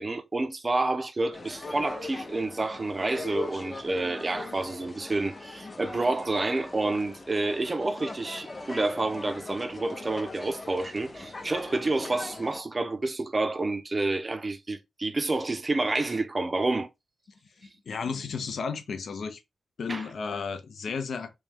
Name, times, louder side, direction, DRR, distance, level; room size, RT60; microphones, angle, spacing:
voice 1, 0.0-16.9 19.9-20.0, right 2 dB, 25° right, 0.5 m, -29 dB
sound 1, 1.3-12.6, left 3 dB, 25° left, 0.6 m, -40 dB
voice 2, 17.6-19.4 19.8-21.4, left 5 dB, 70° left, 0.6 m, -33 dB
3.2 x 3.1 x 3.3 m
wide cardioid pair, 170°, 0 cm